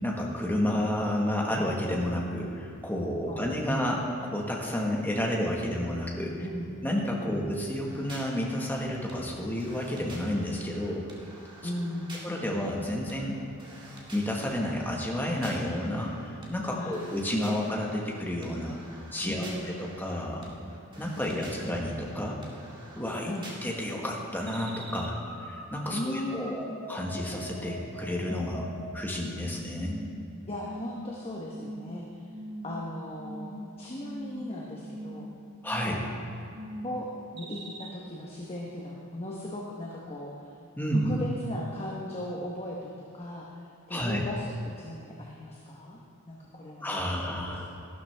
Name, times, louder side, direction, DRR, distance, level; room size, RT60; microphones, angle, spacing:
voice 1, 0.0-6.4 6.8-11.0 12.2-13.4 14.1-18.8 19.1-19.5 19.8-20.4 21.0-22.4 22.9-23.3 23.6-25.1 25.5-28.7 28.9-30.0 35.6-36.0 40.8-41.1 43.9-44.2 46.8-47.7, left 1 dB, 10° left, -2 dB, 1.4 m, -30 dB
voice 2, 6.4-6.7 7.3-7.4 11.6-12.2 16.7-17.0 19.2-19.8 21.3-21.5 21.7-21.9 23.2-23.4 25.9-26.8 30.4-32.1 32.6-35.3 35.9-36.0 36.8-40.4 41.0-43.6 43.9-46.0 46.3-47.7, left 1 dB, 25° left, -3 dB, 1.0 m, -37 dB
sound 1, 7.9-24.0, right 1 dB, 20° right, 1.8 m, -49 dB
sound 2, 24.5-29.4 29.8-30.2 30.6-31.1 31.5-31.9 32.3-32.8 33.2-33.7 34.0-34.5 34.8-35.3 35.7-36.2 36.5-37.0 37.4-37.9, right 1 dB, 45° right, 1.1 m, -41 dB
13.5 x 12.0 x 3.4 m, 2.6 s
head